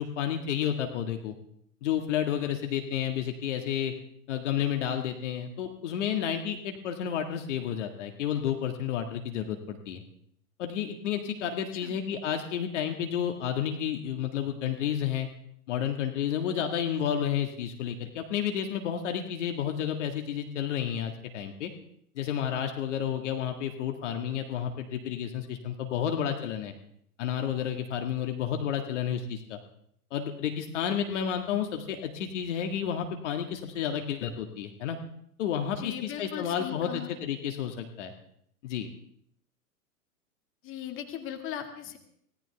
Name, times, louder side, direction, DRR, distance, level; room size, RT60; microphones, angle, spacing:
voice 1, 0.0-1.4 1.8-3.9 4.3-10.0 10.6-15.3 15.7-21.7 22.2-26.7 27.2-29.6 30.1-35.0 35.4-38.1 38.6-38.9, left 9 dB, 50° left, 4 dB, 1.8 m, -31 dB
voice 2, 35.8-37.1 40.6-42.0, left 10 dB, 25° left, 5 dB, 2.0 m, -38 dB
24.5 x 17.0 x 3.4 m, 0.69 s
figure-of-eight pair, 105°, 45 cm